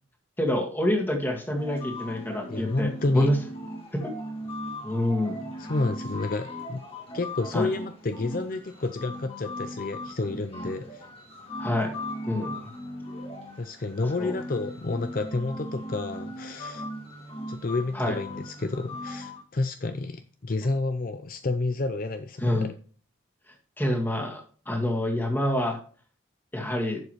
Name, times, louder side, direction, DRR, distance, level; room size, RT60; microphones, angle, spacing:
voice 1, 0.4-3.4 3.9-4.1 4.8-5.4 7.5-7.7 11.6-11.9 12.3-12.7 14.2-14.4 17.9-18.2 22.4-22.7 23.8-25.8 26.5-27.0, left 1 dB, 10° left, 1 dB, 1.9 m, -27 dB
sound 1, 1.6-19.4, equal, 30° left, 2.2 m, -38 dB
voice 2, 2.5-3.3 5.6-6.8 7.1-11.1 13.6-16.9 17.5-22.7, left 2 dB, 45° left, 9 dB, 0.5 m, -30 dB
11.0 x 7.3 x 3.2 m, 0.42 s
head